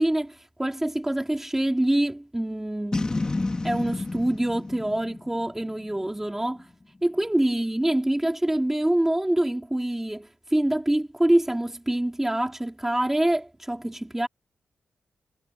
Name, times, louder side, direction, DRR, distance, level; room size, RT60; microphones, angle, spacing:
voice 1, 0.0-3.3 3.6-6.7 7.0-14.3, right 1 dB, 10° right, 3.0 m, -25 dB
Boom, 2.9-6.2, left 2 dB, 20° left, 1.9 m, -30 dB
wide cardioid pair, 160°, 4 cm